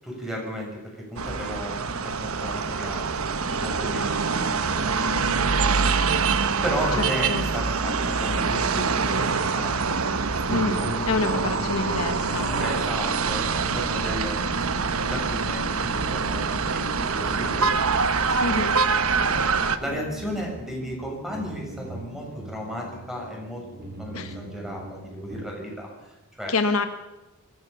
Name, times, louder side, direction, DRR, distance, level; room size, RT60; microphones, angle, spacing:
voice 1, 0.0-3.1 3.6-6.1 6.6-9.8 10.5-11.9 12.3-18.6 19.0-19.4 19.8-23.6 24.0-26.6, equal, ahead, -1 dB, 7.2 m, -35 dB
sound 1, 1.2-19.8, right 5 dB, 70° right, 1.2 m, -25 dB
voice 2, 7.0-7.4 10.5-12.5 18.4-18.8 24.1-24.4 26.5-26.9, left 3 dB, 75° left, 8 dB, 1.4 m, -27 dB
sound 2, 9.1-25.4, right 2 dB, 50° right, 4.7 m, -42 dB
25.0 x 15.0 x 7.1 m, 1.0 s
head